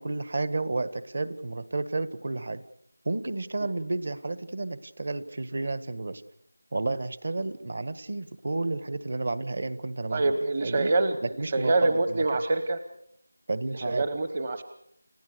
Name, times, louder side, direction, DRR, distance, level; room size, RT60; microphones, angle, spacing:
voice 1, 0.0-2.6 3.0-6.2 6.7-10.9 11.4-12.4 13.5-14.0, right 2 dB, 50° right, 15 dB, 1.4 m, -31 dB
voice 2, 10.1-11.1 11.4-12.8 13.7-14.6, right 2 dB, 30° right, 10 dB, 1.0 m, -25 dB
30.0 x 15.5 x 6.9 m, 0.72 s
figure-of-eight pair, 170°, 0 cm